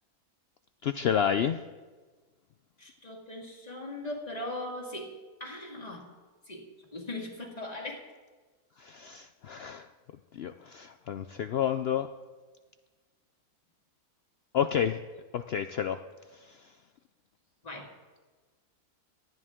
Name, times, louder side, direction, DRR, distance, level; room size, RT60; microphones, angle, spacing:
voice 1, 0.8-1.6 8.8-9.9 10.3-12.1 14.5-15.0 15.3-16.0 16.3-16.7, left 8 dB, 75° left, 9 dB, 0.5 m, -30 dB
voice 2, 2.8-6.1 6.5-8.1 17.6-17.9, left 1 dB, 25° left, 0 dB, 2.1 m, -39 dB
18.5 x 12.5 x 3.7 m, 1.3 s
omnidirectional pair, 1.6 m